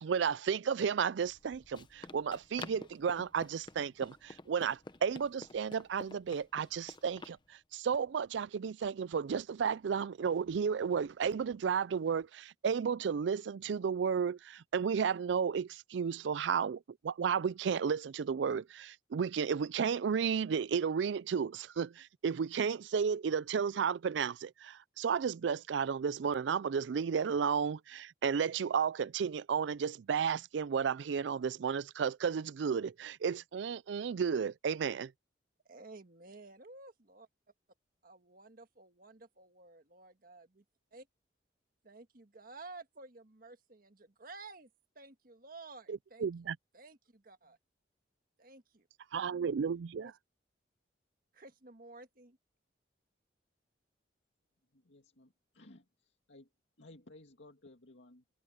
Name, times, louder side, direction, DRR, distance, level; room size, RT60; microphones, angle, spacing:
voice 1, 0.0-35.1 45.9-46.6 49.1-50.1, right 6 dB, 75° right, 0.4 m, -33 dB
Run, 1.2-7.4, left 2 dB, 25° left, 0.9 m, -50 dB
voice 2, 35.6-37.3 38.0-40.6 40.9-41.0 41.8-44.7 44.9-46.3 46.7-47.6 48.4-48.9 50.0-50.1 51.3-52.4, right 3 dB, 50° right, 1.6 m, -53 dB
voice 3, 54.7-56.5 56.8-58.2, left 2 dB, 80° left, 2.2 m, -57 dB
head